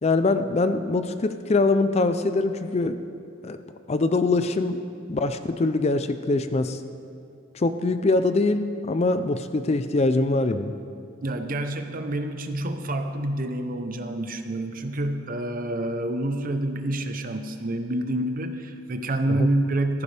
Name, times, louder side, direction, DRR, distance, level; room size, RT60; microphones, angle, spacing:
voice 1, 0.0-3.0 3.4-3.6 3.9-6.8 7.5-10.8 19.4-19.5, left 3 dB, 30° left, 10 dB, 0.4 m, -23 dB
voice 2, 11.2-20.0, right 1 dB, 45° right, 7 dB, 0.8 m, -28 dB
16.0 x 14.0 x 3.4 m, 2.4 s
head